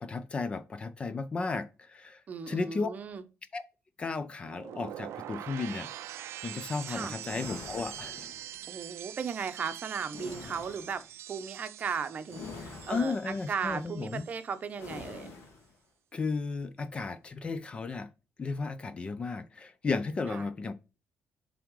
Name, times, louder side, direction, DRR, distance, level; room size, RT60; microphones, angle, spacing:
voice 1, 0.0-2.2 2.5-2.9 3.5-3.6 4.0-5.9 6.4-8.3 12.9-14.2 16.1-18.1 18.4-20.7, left 4 dB, 25° left, 0.4 m, -34 dB
voice 2, 2.3-3.2 6.9-7.2 8.7-11.0 11.3-15.5 20.3-20.5, right 6 dB, 35° right, 0.7 m, -36 dB
sound 1, 4.4-14.5 14.8-15.3, right 12 dB, 70° right, 0.5 m, -44 dB
sound 2, 7.2-8.8 10.1-11.0 12.3-13.4 14.8-15.7, left 4 dB, 70° left, 1.9 m, -46 dB
7.4 x 3.5 x 4.7 m
cardioid pair, 175°, 5 cm